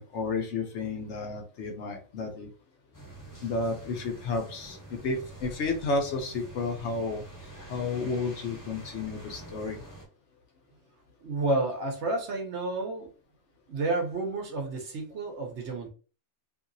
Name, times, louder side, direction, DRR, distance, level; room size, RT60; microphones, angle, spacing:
voice 1, 0.0-2.5 3.4-7.2 7.7-9.8, left 3 dB, 65° left, 4 dB, 0.9 m, -32 dB
sound 1, 2.9-10.1, right 1 dB, 15° left, 0.9 m, -46 dB
voice 2, 11.2-13.1 13.7-15.9, right 2 dB, 60° right, 2 dB, 1.0 m, -30 dB
2.8 x 2.8 x 2.6 m, 0.36 s
omnidirectional pair, 1.4 m